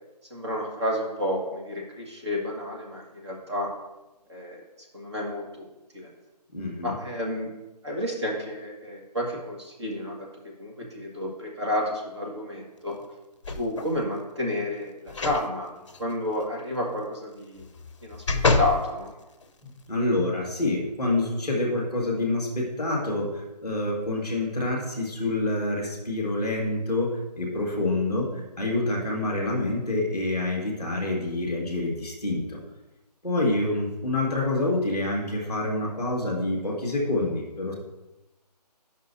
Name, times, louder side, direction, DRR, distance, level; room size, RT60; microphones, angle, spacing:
voice 1, 0.3-3.7 4.3-4.6 4.9-5.7 5.9-6.1 6.8-7.5 7.8-10.3 10.6-12.9 13.6-15.7 16.0-17.7 18.0-18.2 18.6-19.1 33.7-33.8, left 1 dB, 40° right, -1 dB, 1.5 m, -30 dB
voice 2, 6.5-6.9 19.9-32.6 33.2-37.7, left 2 dB, ahead, -4 dB, 1.0 m, -27 dB
sound 1, 13.4-14.0 15.1-15.5 15.9-16.0 17.6-18.8 19.4-19.5, left 3 dB, 45° left, 0.6 m, -26 dB
9.5 x 5.5 x 2.6 m, 1.0 s
hypercardioid pair, 170°, 21 cm